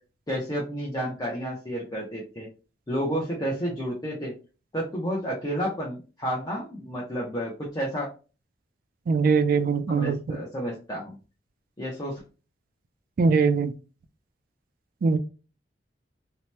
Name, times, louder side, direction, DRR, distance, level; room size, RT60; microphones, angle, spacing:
voice 1, 0.3-2.5 2.9-4.3 4.7-8.1 9.9-11.1 11.8-12.1, equal, 20° left, -4 dB, 0.6 m, -31 dB
voice 2, 9.1-10.4 13.2-13.7 15.0-15.2, right 5 dB, 55° right, 12 dB, 0.3 m, -22 dB
2.8 x 2.1 x 3.1 m, 0.34 s
head